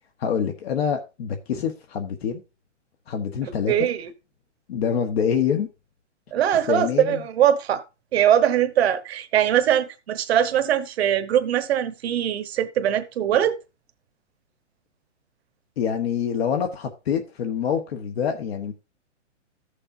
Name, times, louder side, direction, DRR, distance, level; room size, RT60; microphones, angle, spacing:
voice 1, 0.2-2.4 3.1-3.9 4.7-5.7 6.7-7.2 15.8-18.7, left 7 dB, 55° left, 1.3 m, -26 dB
voice 2, 3.4-4.1 6.3-7.8 8.1-13.6, right 10 dB, 55° right, 1.2 m, -21 dB
14.0 x 6.7 x 2.7 m
hypercardioid pair, 155°, 36 cm